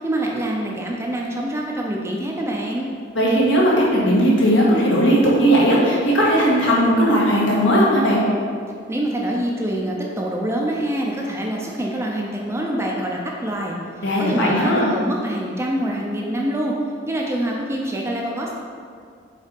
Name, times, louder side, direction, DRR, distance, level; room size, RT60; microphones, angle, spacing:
voice 1, 0.0-2.9 8.9-16.7 17.1-18.5, right 1 dB, 15° right, -1 dB, 0.6 m, -25 dB
voice 2, 3.1-8.2 14.0-14.9, equal, 70° left, -5 dB, 1.7 m, -17 dB
6.4 x 4.0 x 5.3 m, 2.2 s
head